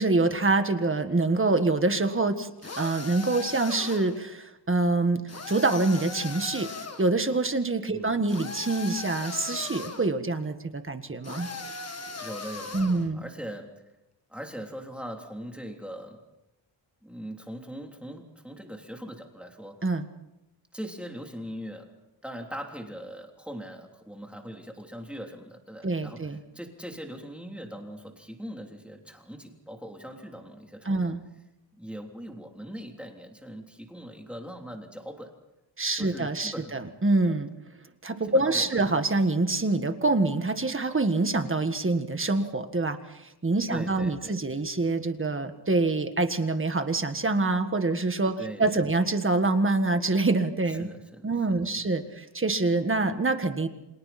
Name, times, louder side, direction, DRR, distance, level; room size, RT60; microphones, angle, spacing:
voice 1, 0.0-2.5 2.8-5.2 5.5-6.7 7.0-11.5 12.7-13.2 19.8-20.0 25.8-26.4 30.8-31.2 35.8-37.5 38.0-50.9 51.2-53.7, right 3 dB, 25° right, 7 dB, 1.7 m, -26 dB
sound 1, 2.6-4.2 5.3-7.1 8.3-10.1 11.2-13.1, left 4 dB, 35° left, 1.7 m, -38 dB
voice 2, 12.2-13.8 14.3-16.2 17.0-19.8 20.7-21.9 22.2-31.1 31.8-35.3 36.0-36.7 38.3-38.9 43.7-44.4 48.4-48.7 50.6-51.3, equal, ahead, 1 dB, 3.3 m, -41 dB
29.5 x 26.5 x 4.3 m, 0.95 s
wide cardioid pair, 155°, 46 cm